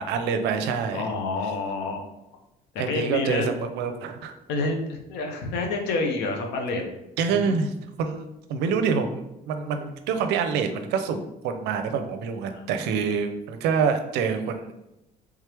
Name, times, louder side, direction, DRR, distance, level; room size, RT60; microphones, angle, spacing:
voice 1, 0.0-1.1 2.8-4.3 7.2-7.7 8.0-14.7, right 6 dB, 85° right, 7 dB, 0.5 m, -26 dB
voice 2, 0.9-2.0 2.9-3.5 4.5-6.8 7.3-7.6 12.5-12.6, left 3 dB, 85° left, 2 dB, 0.8 m, -28 dB
3.5 x 3.2 x 3.3 m, 0.91 s
cardioid pair, 110°, 17 cm